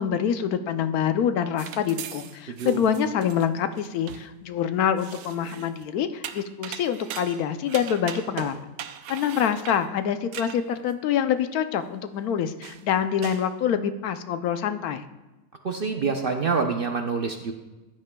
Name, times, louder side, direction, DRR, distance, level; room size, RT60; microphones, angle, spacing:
voice 1, 0.0-8.6 9.1-15.0, left 8 dB, 75° left, 10 dB, 1.1 m, -26 dB
sound 1, 1.6-4.3 5.0-5.9 6.2-10.9 11.4-11.5 12.1-12.2 12.6-12.9 13.2-13.5, right 9 dB, 90° right, 1.1 m, -40 dB
voice 2, 15.6-17.5, right 4 dB, 60° right, 5 dB, 0.6 m, -26 dB
15.0 x 9.6 x 2.3 m, 1.1 s
omnidirectional pair, 1.6 m